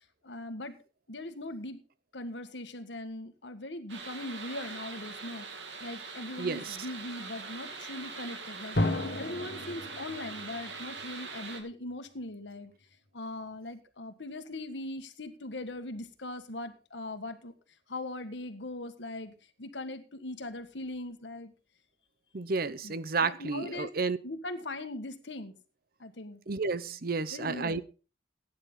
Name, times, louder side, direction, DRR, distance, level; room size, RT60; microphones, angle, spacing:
voice 1, 0.2-0.8 1.1-1.8 2.1-5.5 5.8-12.7 13.1-17.5 17.9-19.3 19.6-21.5 22.8-23.0 23.2-23.9 24.2-25.5 26.0-26.4 27.3-27.8, left 2 dB, 85° left, 8 dB, 1.6 m, -40 dB
sound 1, 3.9-11.6, right 4 dB, 85° right, 2.6 m, -43 dB
voice 2, 6.4-6.8 22.3-24.2 26.5-27.8, right 4 dB, 55° right, 16 dB, 0.8 m, -31 dB
Drum, 8.8-11.5, left 1 dB, 65° left, 1.7 m, -33 dB
16.5 x 9.6 x 3.8 m, 0.34 s
head